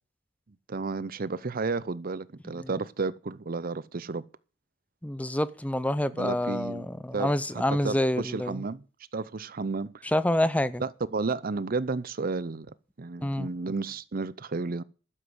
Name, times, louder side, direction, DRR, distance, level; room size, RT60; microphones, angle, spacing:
voice 1, 0.7-4.2 6.1-8.8 9.1-10.1 10.8-12.7 13.0-14.8, right 4 dB, 45° right, 0.6 m, -32 dB
voice 2, 5.0-8.6 10.0-10.8 13.2-13.5, left 1 dB, 5° left, 0.5 m, -27 dB
11.5 x 7.4 x 7.8 m
head